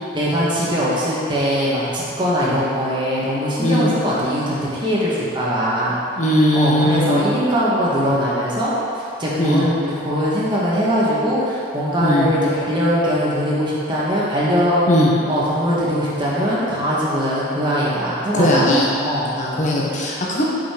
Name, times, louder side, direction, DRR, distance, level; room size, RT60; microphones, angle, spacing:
voice 1, 0.1-6.0 6.5-8.7 9.2-14.8 15.2-18.7 19.0-19.3, equal, 25° right, -8 dB, 1.4 m, -21 dB
voice 2, 3.6-3.9 6.1-7.3 9.4-9.7 12.0-12.3 14.9-15.1 18.3-18.9 19.4-20.4, equal, 40° left, -4 dB, 1.1 m, -18 dB
5.6 x 5.6 x 5.1 m, 2.7 s
head